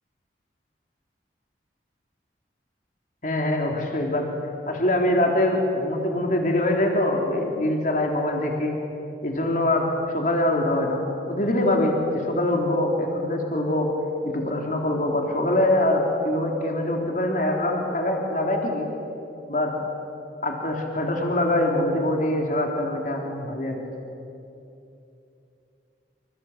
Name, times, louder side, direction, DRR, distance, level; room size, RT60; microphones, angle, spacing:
voice 1, 3.2-4.3 4.7-8.8 9.2-13.9 14.3-18.9 19.5-19.7 20.4-23.8, left 1 dB, 45° left, 1 dB, 3.5 m, -24 dB
27.5 x 27.0 x 8.0 m, 2.8 s
head